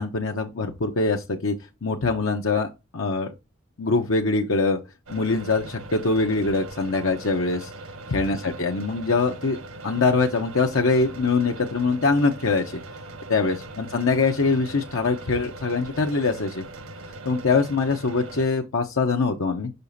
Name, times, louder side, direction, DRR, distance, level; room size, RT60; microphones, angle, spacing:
voice 1, 0.0-1.5 1.8-3.3 3.8-4.8 5.1-7.7 8.1-9.6 9.8-12.8 13.3-16.6 17.2-19.7, left 3 dB, 75° left, 0.8 m, -23 dB
sound 1, 5.1-18.5, right 2 dB, 80° right, 1.4 m, -40 dB
6.7 x 5.8 x 2.7 m
head